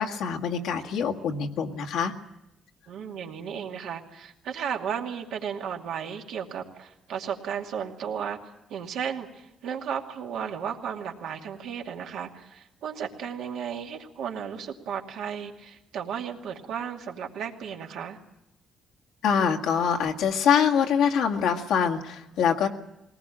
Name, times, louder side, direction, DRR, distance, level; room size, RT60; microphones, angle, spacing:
voice 1, 0.0-2.1 19.2-22.7, left 7 dB, 85° left, 3 dB, 1.9 m, -24 dB
voice 2, 2.9-8.4 8.7-18.2, right 8 dB, 80° right, 1 dB, 2.4 m, -34 dB
21.5 x 19.0 x 8.7 m, 0.88 s
cardioid pair, 90°, 0 cm